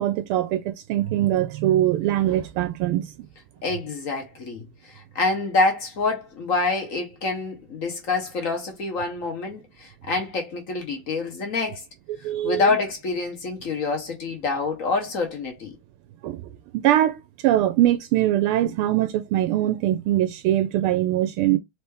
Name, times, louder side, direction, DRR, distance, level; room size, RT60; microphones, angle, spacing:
voice 1, 0.0-3.1 12.2-12.8 16.2-16.4 16.7-21.6, right 13 dB, 80° right, 1.4 m, -22 dB
voice 2, 3.6-11.8 12.2-15.8, left 3 dB, 50° left, 1.0 m, -26 dB
4.3 x 3.2 x 3.3 m
omnidirectional pair, 2.4 m